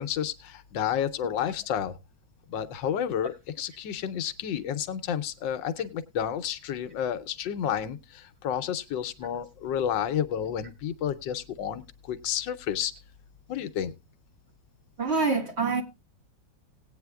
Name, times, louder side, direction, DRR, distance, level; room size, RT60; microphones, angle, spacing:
voice 1, 0.0-2.0 2.5-12.9 13.5-13.9, left 9 dB, 85° left, 1.4 m, -31 dB
voice 2, 15.0-15.8, right 4 dB, 40° right, 1.5 m, -26 dB
18.0 x 8.8 x 2.3 m
omnidirectional pair, 2.0 m